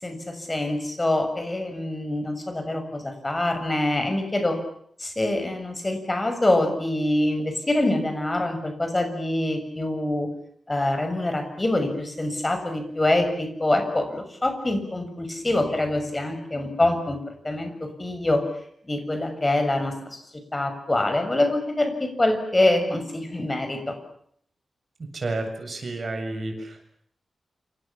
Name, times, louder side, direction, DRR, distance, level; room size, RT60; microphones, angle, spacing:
voice 1, 0.0-4.6 5.0-10.3 10.7-18.4 18.9-20.2 20.5-24.0, left 1 dB, 20° left, 7 dB, 6.6 m, -25 dB
voice 2, 25.1-26.8, right 2 dB, 45° right, 5 dB, 7.7 m, -31 dB
29.0 x 27.5 x 7.3 m, 0.69 s
wide cardioid pair, 125°, 0 cm